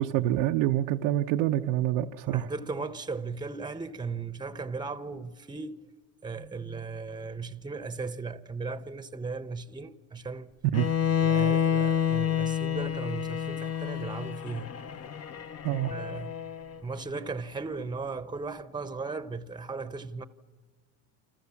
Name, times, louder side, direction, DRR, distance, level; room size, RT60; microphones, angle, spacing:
voice 1, 0.0-2.5 10.7-10.9 15.6-15.9, right 13 dB, 80° right, 1.0 m, -26 dB
voice 2, 2.3-5.9 6.2-10.5 11.2-14.7 15.9-16.3 16.8-20.2, right 4 dB, 10° right, 1.0 m, -36 dB
Bowed string instrument, 10.7-16.8, left 9 dB, 40° left, 1.1 m, -29 dB
28.5 x 26.0 x 7.2 m
supercardioid pair, 100°, 39 cm